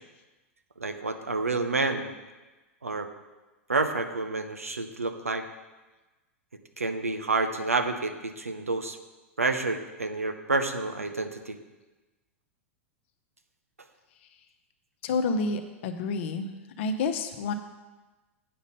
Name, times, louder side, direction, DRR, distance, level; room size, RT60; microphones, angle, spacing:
voice 1, 0.8-2.1 2.8-3.1 3.7-5.4 6.8-9.0 9.4-11.6, right 3 dB, 85° right, 7 dB, 0.7 m, -29 dB
voice 2, 15.0-17.5, left 4 dB, 55° left, 7 dB, 0.8 m, -29 dB
8.7 x 5.2 x 5.4 m, 1.2 s
figure-of-eight pair, 95°, 8 cm